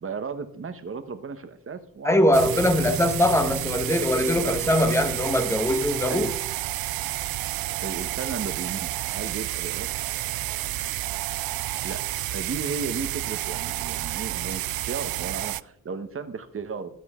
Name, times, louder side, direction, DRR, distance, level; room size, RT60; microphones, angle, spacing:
voice 1, 0.0-2.7 3.4-3.6 4.4-4.6 6.0-6.3 7.8-9.9 11.8-16.9, right 5 dB, 40° right, 1.2 m, -35 dB
voice 2, 2.0-6.3, left 1 dB, 10° left, 1.3 m, -22 dB
sound 1, 2.3-15.6, right 16 dB, 85° right, 0.5 m, -30 dB
21.0 x 7.8 x 3.7 m
wide cardioid pair, 140°, 35 cm